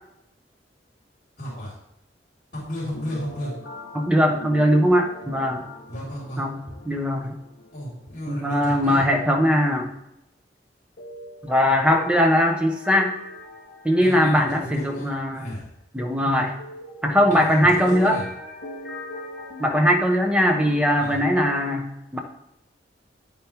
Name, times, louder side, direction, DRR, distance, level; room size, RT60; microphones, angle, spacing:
voice 1, 1.4-1.7 2.5-3.5 5.9-6.4 7.7-9.0 14.0-15.7 17.3-18.3 21.0-21.2, equal, 50° left, -7 dB, 4.3 m, -33 dB
sound 1, 2.9-8.2 8.5-8.6 11.0-15.1 16.4-20.8, equal, 70° left, 2.9 m, -41 dB
voice 2, 3.9-5.7 6.4-6.6 6.8-7.3 8.3-9.9 11.4-13.2 13.8-15.5 15.9-16.5 17.0-18.2 19.6-22.2, equal, 5° right, 3 dB, 1.2 m, -20 dB
9.5 x 9.1 x 3.6 m, 0.83 s
head